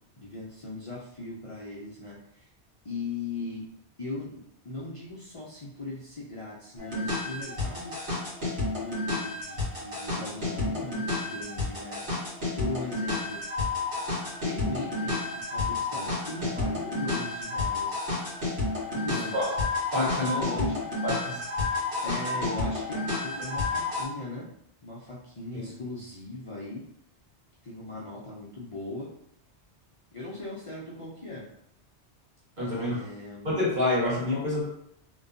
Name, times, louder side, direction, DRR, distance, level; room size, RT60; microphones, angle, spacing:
voice 1, 0.2-2.5 2.8-3.7 4.0-8.0 8.7-12.0 12.6-13.9 14.4-18.0 18.9-19.5 19.9-20.1 20.4-20.8 22.0-24.5 24.8-26.8 27.6-29.1 30.1-31.5 32.6-33.5, left 2 dB, 50° left, -6 dB, 0.3 m, -39 dB
sound 1, 6.8-24.0, left 3 dB, 75° right, 1.2 m, -31 dB
voice 2, 19.9-20.4 21.0-21.4 25.5-25.7 32.6-33.0 33.4-34.6, left 1 dB, 45° right, -7 dB, 1.2 m, -27 dB
2.6 x 2.2 x 2.4 m, 0.73 s
omnidirectional pair, 1.2 m